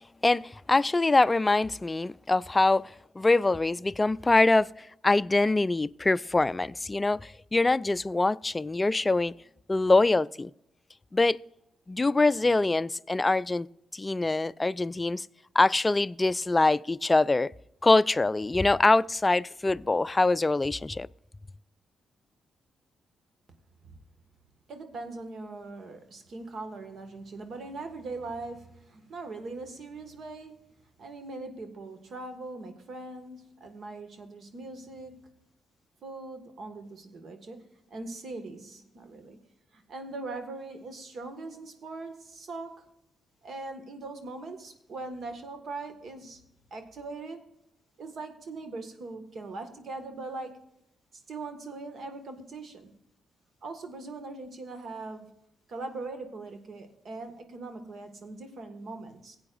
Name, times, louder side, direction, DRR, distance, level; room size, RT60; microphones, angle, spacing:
voice 1, 0.2-4.7 5.0-9.3 9.7-10.5 11.1-11.4 11.9-13.7 13.9-15.3 15.5-17.5 17.8-21.1, left 2 dB, 25° left, 0.3 m, -24 dB
voice 2, 24.7-30.7 31.0-35.4 36.0-39.4 39.7-42.9 43.4-46.4 46.7-47.4 48.0-50.6 51.1-52.9 53.6-55.3 55.7-59.4, right 3 dB, 65° right, 1.7 m, -41 dB
17.0 x 8.6 x 2.5 m
supercardioid pair, 55°, 0 cm